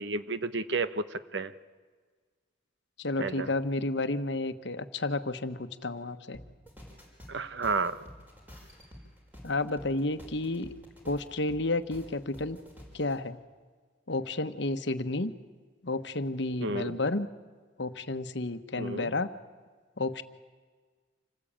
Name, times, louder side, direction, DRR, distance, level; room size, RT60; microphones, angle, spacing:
voice 1, 0.0-1.5 3.2-3.5 7.3-8.0 16.6-17.0 18.8-19.1, right 3 dB, 70° right, 13 dB, 1.0 m, -31 dB
voice 2, 3.0-6.4 9.4-10.7 11.0-12.6 12.9-13.4 14.1-15.3 15.8-17.3 17.8-19.3 20.0-20.2, left 2 dB, 65° left, 10 dB, 1.2 m, -31 dB
sound 1, 6.3-13.2, equal, 10° right, 5.1 m, -50 dB
27.0 x 19.0 x 8.8 m, 1.5 s
head